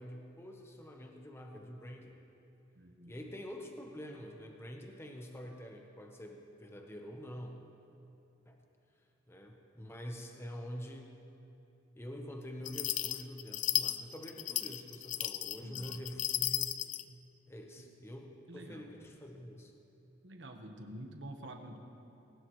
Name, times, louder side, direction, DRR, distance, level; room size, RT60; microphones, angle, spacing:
voice 1, 0.0-2.2 3.1-7.7 8.5-8.6 9.3-11.1 11.9-16.8 17.5-19.7, equal, 15° left, 2 dB, 0.9 m, -46 dB
voice 2, 2.8-3.2 15.6-16.0 17.8-17.9 18.5-18.8 20.2-21.8, right 1 dB, 65° right, 4 dB, 1.3 m, -48 dB
sound 1, 12.6-17.0, left 12 dB, 40° left, 0.4 m, -35 dB
20.5 x 19.0 x 3.2 m, 2.9 s
head